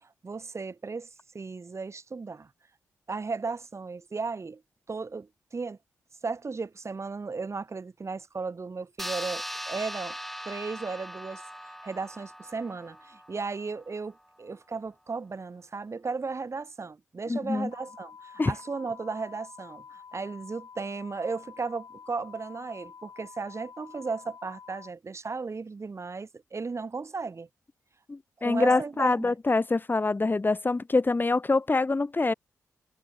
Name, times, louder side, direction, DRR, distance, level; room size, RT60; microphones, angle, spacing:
voice 1, 0.0-2.5 3.1-4.6 4.9-5.8 6.2-10.2 10.4-11.4 11.8-27.5 28.4-29.3, right 4 dB, 45° right, 2.6 m, -35 dB
sound 1, 9.0-13.9, equal, ahead, 5.4 m, -40 dB
voice 2, 17.3-17.7 18.4-18.5 28.1-32.3, left 3 dB, 30° left, 1.1 m, -25 dB
sound 2, 17.7-24.9, left 6 dB, 65° left, 5.7 m, -49 dB
supercardioid pair, 40°, 7 cm